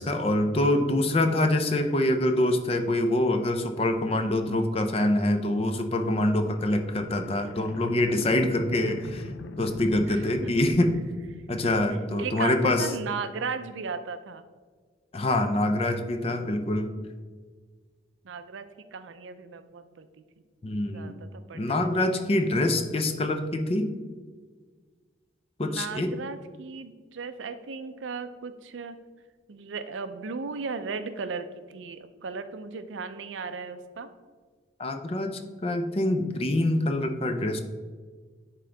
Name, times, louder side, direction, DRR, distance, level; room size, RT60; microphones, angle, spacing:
voice 1, 0.0-9.3 9.6-10.9 11.5-12.9 15.1-16.9 20.6-21.1 21.5-23.9 25.6-26.1 34.8-35.3 35.6-37.6, left 1 dB, 30° left, 7 dB, 0.5 m, -25 dB
sound 1, 6.0-11.9, left 3 dB, 80° left, 0.4 m, -42 dB
voice 2, 10.1-10.5 12.2-14.5 18.2-20.1 20.9-21.9 25.6-29.0 29.5-34.1, right 5 dB, 85° right, 10 dB, 0.5 m, -36 dB
9.9 x 3.8 x 3.4 m, 1.5 s
head